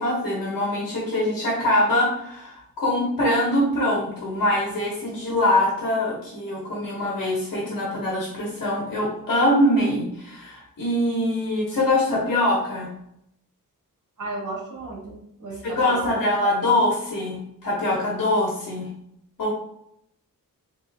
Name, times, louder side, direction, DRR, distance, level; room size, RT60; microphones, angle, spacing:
voice 1, 0.0-12.9 15.6-18.9 19.4-19.5, left 1 dB, 65° left, -4 dB, 1.0 m, -23 dB
voice 2, 14.2-16.2, right 2 dB, 60° right, -3 dB, 1.3 m, -34 dB
3.6 x 2.6 x 3.4 m, 0.76 s
wide cardioid pair, 145°, 35 cm